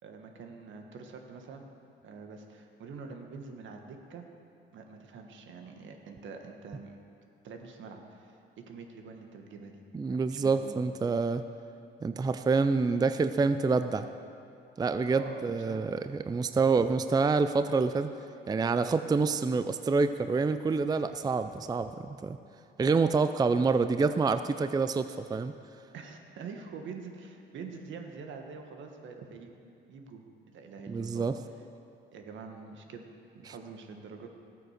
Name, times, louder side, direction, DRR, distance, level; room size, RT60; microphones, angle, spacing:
voice 1, 0.0-1.6 2.0-4.3 4.7-7.0 7.4-9.8 10.1-10.8 15.1-15.8 25.9-29.5 29.9-31.3 32.1-33.1 33.3-34.3, right 4 dB, 75° right, 4 dB, 1.5 m, -45 dB
voice 2, 9.9-11.4 12.0-14.1 14.8-18.1 18.5-22.4 22.8-25.5 30.9-31.4, right 4 dB, 20° right, 11 dB, 0.4 m, -27 dB
13.5 x 9.1 x 6.5 m, 2.6 s
cardioid pair, 90°, 20 cm